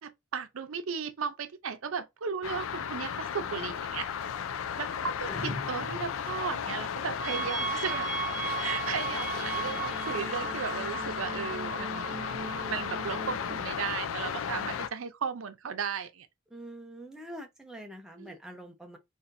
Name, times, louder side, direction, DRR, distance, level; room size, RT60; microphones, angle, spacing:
voice 1, 0.0-4.1 4.8-8.1 8.6-12.1 12.7-16.3 18.2-18.3, right 6 dB, 90° right, 0.6 m, -35 dB
sound 1, 2.4-14.9, left 7 dB, 85° left, 0.4 m, -35 dB
sound 2, 5.3-6.7, left 2 dB, 40° left, 0.6 m, -40 dB
sound 3, 7.2-13.6, right 6 dB, 35° right, 0.8 m, -36 dB
voice 2, 16.5-19.0, right 1 dB, 5° right, 0.6 m, -45 dB
4.1 x 2.6 x 2.6 m
head